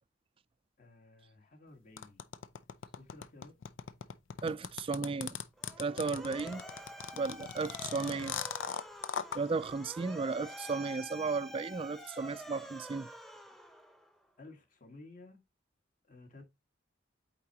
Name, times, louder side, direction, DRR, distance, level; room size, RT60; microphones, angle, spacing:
voice 1, 0.8-2.3 2.9-3.6 14.4-15.4 16.0-16.4, left 2 dB, 45° left, 1.7 m, -54 dB
sound 1, 2.0-9.4, left 7 dB, 85° left, 0.6 m, -39 dB
voice 2, 4.4-5.4 5.8-6.6 7.1-8.4 9.3-13.1, right 4 dB, 30° right, 0.3 m, -34 dB
Motor vehicle (road) / Siren, 5.6-14.2, right 1 dB, ahead, 0.8 m, -48 dB
8.5 x 4.5 x 2.8 m
head